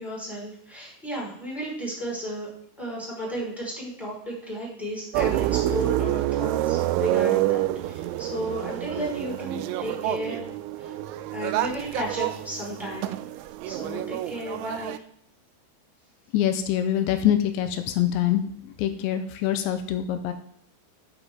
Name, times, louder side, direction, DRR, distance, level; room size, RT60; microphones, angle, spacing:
voice 1, 0.0-2.5 2.8-10.5 10.8-10.9 11.3-13.1 13.6-15.0, equal, ahead, -5 dB, 3.9 m, -34 dB
sound 1, 5.1-15.0, right 14 dB, 90° right, 2.9 m, -28 dB
voice 2, 16.3-20.3, left 11 dB, 90° left, 8 dB, 3.0 m, -25 dB
10.5 x 8.0 x 3.6 m, 0.70 s
omnidirectional pair, 5.2 m